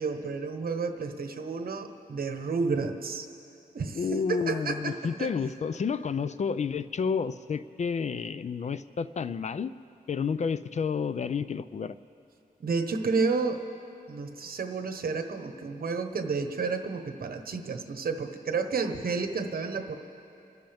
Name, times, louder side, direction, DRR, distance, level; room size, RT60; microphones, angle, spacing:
voice 1, 0.0-3.3 3.7-5.3 12.6-13.6 14.1-20.0, right 4 dB, 70° right, 6 dB, 1.1 m, -31 dB
voice 2, 3.9-9.7 10.1-12.0, left 6 dB, 50° left, 14 dB, 0.4 m, -30 dB
29.0 x 13.0 x 3.5 m, 2.8 s
wide cardioid pair, 120°, 16 cm